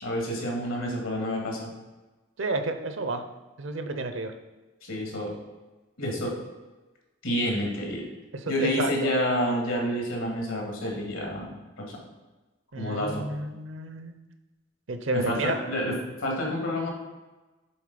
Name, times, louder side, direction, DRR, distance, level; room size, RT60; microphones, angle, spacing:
voice 1, 0.0-1.7 4.8-5.3 6.0-6.3 7.2-8.0 8.5-11.5 11.9-12.0 12.8-13.2 15.1-15.9 16.2-16.9, equal, 80° left, 0 dB, 2.1 m, -28 dB
voice 2, 2.4-3.2 3.6-4.3 8.3-9.1 12.7-14.1 14.9-15.6, right 2 dB, 65° right, 8 dB, 0.7 m, -31 dB
7.1 x 4.0 x 5.1 m, 1.2 s
head